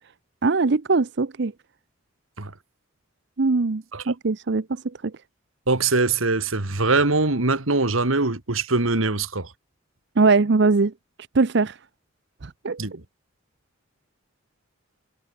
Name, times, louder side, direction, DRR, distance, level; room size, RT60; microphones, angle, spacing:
voice 1, 0.4-1.5 3.4-5.1 10.2-10.9 11.3-11.8 12.4-12.8, right 3 dB, 60° right, 0.7 m, -21 dB
voice 2, 5.7-9.5 12.8-13.0, right 3 dB, 85° right, 2.2 m, -22 dB
head